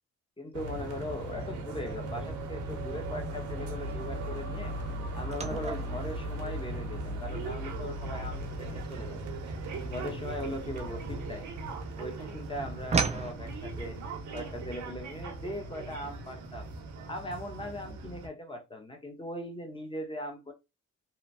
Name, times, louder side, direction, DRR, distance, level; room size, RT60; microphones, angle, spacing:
voice 1, 0.4-4.7 5.1-9.3 9.8-11.5 12.0-14.0 14.3-16.7 17.1-20.5, left 1 dB, 15° left, 0.9 m, -39 dB
sound 1, 0.5-18.3, right 2 dB, 75° right, 0.8 m, -38 dB
sound 2, 5.3-11.8 12.1-13.3, right 5 dB, 25° right, 0.4 m, -36 dB
2.9 x 2.2 x 2.6 m
cardioid pair, 90°, 30 cm